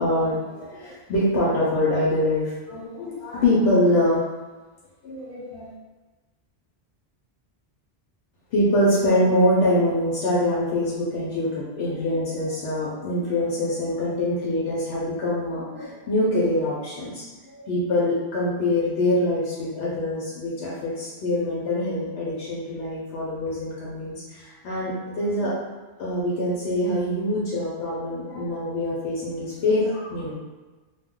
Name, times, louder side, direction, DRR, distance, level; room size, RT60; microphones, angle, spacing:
voice 1, 0.0-4.2 5.0-5.7 8.5-25.6 26.0-30.3, left 1 dB, 85° left, -7 dB, 0.9 m, -24 dB
2.3 x 2.2 x 3.6 m, 1.2 s
omnidirectional pair, 1.1 m